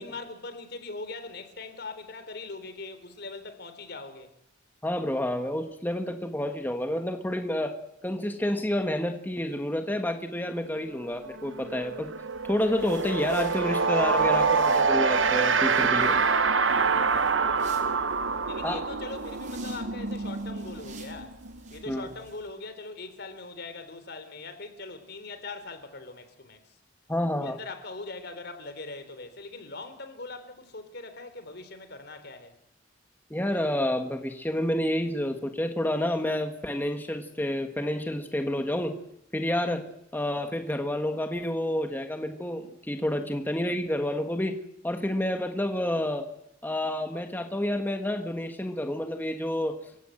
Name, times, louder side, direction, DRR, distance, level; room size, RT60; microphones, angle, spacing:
voice 1, 0.0-4.3 16.6-18.2 18.5-21.4 21.7-26.8 27.4-32.6, left 3 dB, 60° left, 3.7 m, -41 dB
voice 2, 4.8-7.8 8.0-12.1 12.4-16.2 18.6-18.8 21.9-22.1 27.1-27.6 33.3-39.0 39.3-39.9 40.1-44.6 44.8-46.3 46.6-49.8, left 1 dB, 10° left, 1.5 m, -29 dB
sound 1, 10.9-11.1 11.4-21.9, right 4 dB, 90° right, 1.4 m, -26 dB
sound 2, 12.3-22.5, right 3 dB, 40° right, 4.9 m, -52 dB
29.0 x 16.5 x 7.9 m
head